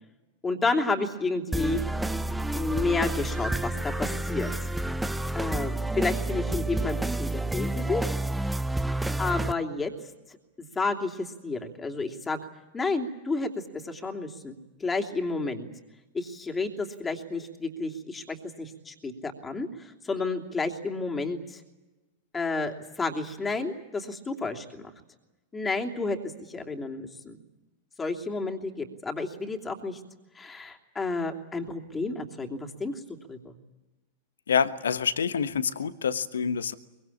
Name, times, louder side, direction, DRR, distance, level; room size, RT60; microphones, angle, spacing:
voice 1, 0.4-1.8 2.5-4.5 5.3-8.1 9.2-9.9 10.3-12.4 12.7-14.5 14.8-15.7 16.1-21.6 22.3-24.9 25.5-26.2 26.5-27.4 28.0-30.0 30.3-33.0 33.3-33.5, left 3 dB, 15° left, 3 dB, 3.0 m, -31 dB
sound 1, 1.5-9.5, right 2 dB, 5° right, 0.9 m, -29 dB
voice 2, 34.5-36.7, left 7 dB, 70° left, 13 dB, 1.2 m, -27 dB
24.0 x 23.5 x 8.6 m, 1.1 s
figure-of-eight pair, 90°, 0 cm